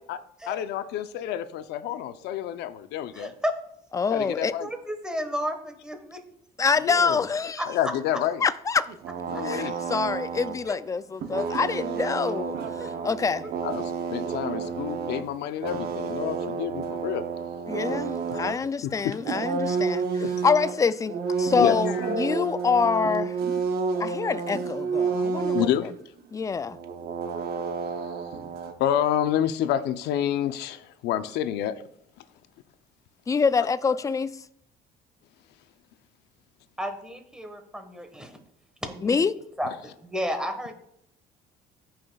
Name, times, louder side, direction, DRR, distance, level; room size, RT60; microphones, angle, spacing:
voice 1, 0.5-3.3 4.1-4.7 6.8-7.2 7.7-8.4 9.3-9.8 13.6-17.2 18.3-18.4 18.8-19.1 20.2-20.3 21.6-22.1 25.5-25.9 28.8-31.7, left 11 dB, 80° left, 0.6 m, -28 dB
voice 2, 3.1-3.5 4.6-6.2 7.6-7.7 12.0-12.1 12.8-12.9 36.8-38.4 38.8-39.2 39.6-40.7, equal, 5° right, 1.3 m, -32 dB
voice 3, 3.9-4.5 6.6-7.6 8.4-8.8 9.4-13.5 17.7-23.3 24.0-25.7 26.3-26.8 33.3-34.4 39.0-39.4, left 5 dB, 20° left, 0.3 m, -26 dB
sound 1, 8.9-10.9 11.2-15.3 15.6-18.6 19.1-25.8 26.2-26.3 26.5-28.7, right 5 dB, 65° right, 0.9 m, -30 dB
14.0 x 5.7 x 2.3 m
cardioid pair, 110°, 17 cm